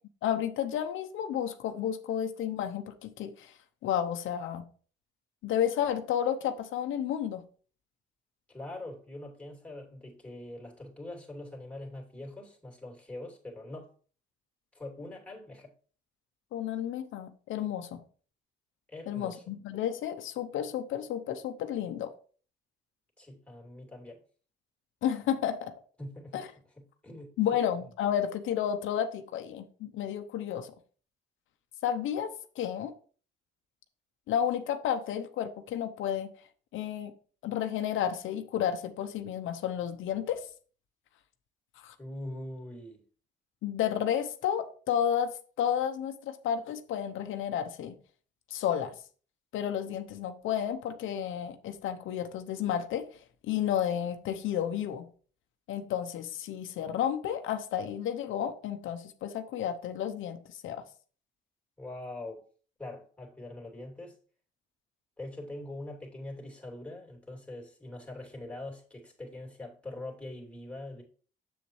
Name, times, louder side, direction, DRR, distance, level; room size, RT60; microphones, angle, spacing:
voice 1, 0.2-3.5 3.8-4.6 5.4-7.4 16.5-18.0 19.1-22.1 25.0-25.7 26.3-26.5 27.4-30.7 31.8-32.9 34.3-36.3 36.7-37.1 37.4-40.4 41.8-41.9 43.6-47.9 48.5-48.9 49.5-55.1 55.7-60.8, left 9 dB, 80° left, 0.7 m, -32 dB
voice 2, 8.5-13.9 14.7-15.7 18.9-19.4 23.2-24.2 26.0-26.4 27.0-27.3 42.0-43.0 61.8-62.4 62.8-64.1 65.2-71.0, left 1 dB, 5° left, 2.7 m, -43 dB
7.3 x 7.1 x 3.1 m
cardioid pair, 90°, 20 cm